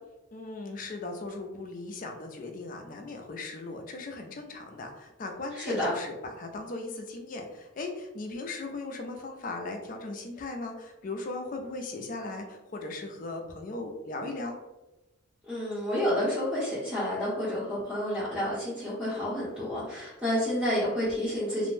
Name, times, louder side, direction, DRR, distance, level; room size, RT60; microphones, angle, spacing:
voice 1, 0.3-14.6, left 2 dB, 40° left, 3 dB, 0.4 m, -38 dB
voice 2, 5.5-5.9 15.4-21.7, equal, 5° right, -12 dB, 0.7 m, -30 dB
2.5 x 2.1 x 3.1 m, 1.0 s
head